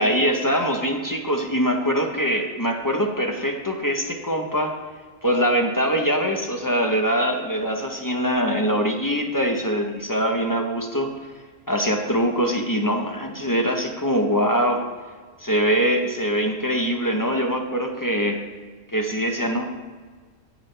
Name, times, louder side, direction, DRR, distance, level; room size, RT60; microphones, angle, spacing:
voice 1, 0.0-4.7 5.2-11.1 11.7-14.8 15.4-18.4 18.9-19.7, equal, 20° left, 2 dB, 0.7 m, -23 dB
17.5 x 6.1 x 3.3 m, 1.5 s
omnidirectional pair, 1.4 m